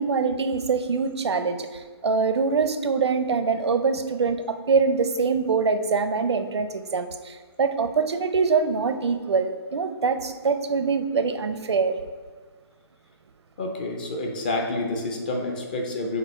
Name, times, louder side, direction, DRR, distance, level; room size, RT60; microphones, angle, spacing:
voice 1, 0.0-12.0, right 5 dB, 80° right, 9 dB, 0.6 m, -24 dB
voice 2, 13.6-16.2, left 2 dB, 20° left, 2 dB, 0.5 m, -28 dB
7.6 x 2.6 x 5.3 m, 1.5 s
hypercardioid pair, 170°, 14 cm